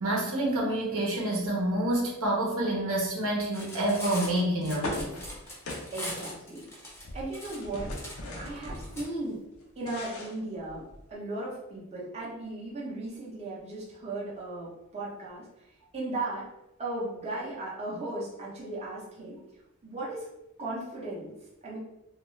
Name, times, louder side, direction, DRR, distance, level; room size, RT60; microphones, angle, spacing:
voice 1, 0.0-5.1, right 1 dB, 70° right, -3 dB, 0.8 m, -28 dB
Cutlery silverware, 3.4-9.0, left 1 dB, 10° left, 0.6 m, -41 dB
sound 1, 4.8-6.7 7.0-9.1 9.5-11.1, left 1 dB, 70° left, 0.5 m, -39 dB
voice 2, 5.9-6.8 7.1-7.9 8.3-9.4 9.8-15.5 15.9-16.5 16.8-19.4 19.8-20.3 20.6-21.3 21.6-21.8, right 2 dB, 30° right, -6 dB, 0.6 m, -36 dB
2.3 x 2.3 x 3.0 m, 0.91 s
head